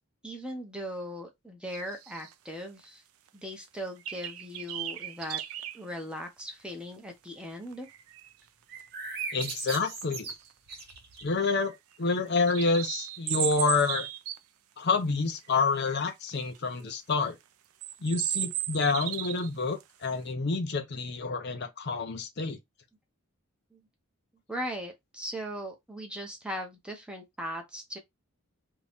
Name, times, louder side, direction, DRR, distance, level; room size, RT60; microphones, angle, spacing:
voice 1, 0.2-3.0 3.3-5.4 5.7-7.9 23.7-23.8 24.5-28.0, equal, 5° right, 0.7 m, -39 dB
sound 1, 1.7-2.3 2.8-2.9 3.3-3.4 4.0-5.8 6.4-6.5 7.7-8.3 9.8-10.0 10.3-10.4 10.7-11.2 11.6-14.4 15.3-15.6 15.9-16.6 17.1-17.2 17.8-19.5 19.8-20.0, right 12 dB, 80° right, 0.4 m, -35 dB
sound 2, 8.7-11.4, right 4 dB, 45° right, 1.0 m, -38 dB
voice 2, 9.3-10.3 11.2-11.7 12.0-14.1 14.8-17.4 18.0-22.6, left 4 dB, 50° left, 0.5 m, -28 dB
2.9 x 2.7 x 3.4 m
head